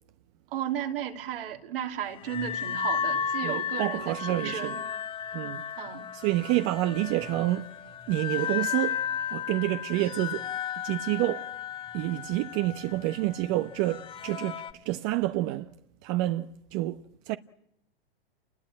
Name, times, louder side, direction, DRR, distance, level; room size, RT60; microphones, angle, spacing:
voice 1, 0.5-4.9 5.8-6.1, right 10 dB, 65° right, 3.1 m, -34 dB
sound 1, 2.1-14.7, left 8 dB, 15° left, 1.3 m, -34 dB
voice 2, 3.4-4.8 5.3-5.6 6.1-7.7 8.1-9.0 9.3-10.5 10.8-11.5 11.9-15.7 16.0-17.4, right 16 dB, 40° right, 0.9 m, -28 dB
29.5 x 20.5 x 8.8 m
hypercardioid pair, 125°, 30 cm